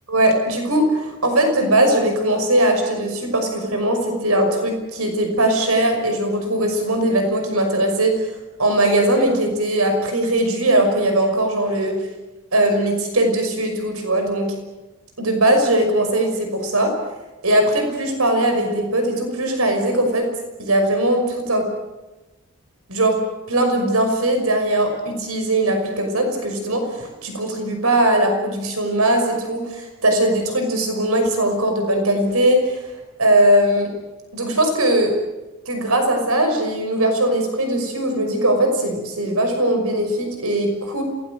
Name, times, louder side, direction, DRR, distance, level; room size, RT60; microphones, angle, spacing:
voice 1, 0.1-8.3 8.6-12.0 12.5-14.5 15.2-16.9 17.4-20.3 20.6-21.7 22.9-23.2 23.5-32.9 33.2-33.9 34.3-35.1 35.7-41.0, right 1 dB, 80° right, 5 dB, 5.8 m, -20 dB
28.0 x 19.5 x 7.8 m, 1.1 s
head